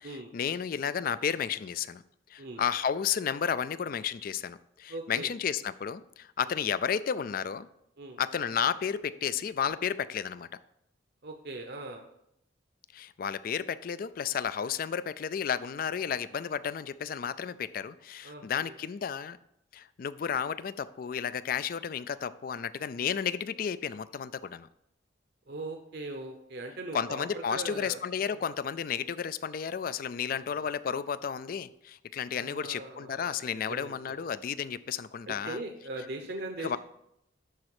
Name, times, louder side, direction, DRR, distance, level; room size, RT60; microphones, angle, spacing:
voice 1, 0.3-2.0 2.3-7.7 8.2-10.5 12.9-19.4 19.7-24.7 26.9-35.6 36.6-36.8, left 7 dB, 45° left, 16 dB, 0.3 m, -32 dB
voice 2, 4.9-5.3 6.4-6.6 8.0-8.2 11.2-12.0 18.2-18.8 25.5-28.5 30.3-30.6 32.3-34.3 35.3-36.8, right 2 dB, 55° right, 4 dB, 0.8 m, -41 dB
11.0 x 4.2 x 4.8 m, 0.79 s
head